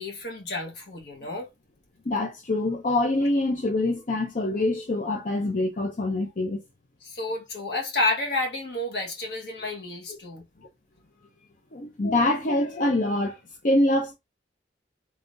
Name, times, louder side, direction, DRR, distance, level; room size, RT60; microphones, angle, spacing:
voice 1, 0.0-1.5 7.0-10.4, left 2 dB, 70° left, 1.3 m, -30 dB
voice 2, 2.1-6.6 11.7-13.4 13.6-14.1, left 2 dB, 50° left, 0.6 m, -25 dB
3.8 x 3.2 x 2.5 m
head